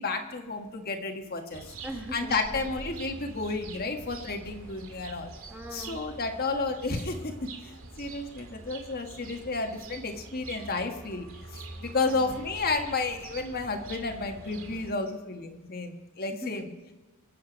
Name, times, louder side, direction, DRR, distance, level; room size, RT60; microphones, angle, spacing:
voice 1, 0.0-1.7 2.1-5.3 5.7-7.5 8.0-11.3 11.5-16.7, left 3 dB, 45° left, 4 dB, 1.4 m, -32 dB
sound 1, 1.5-14.9, right 3 dB, 65° right, 2.2 m, -45 dB
voice 2, 1.8-2.7 5.5-6.0 12.0-12.4 16.3-16.9, right 1 dB, 5° right, 2 dB, 1.7 m, -41 dB
24.5 x 8.5 x 5.2 m, 1.1 s
head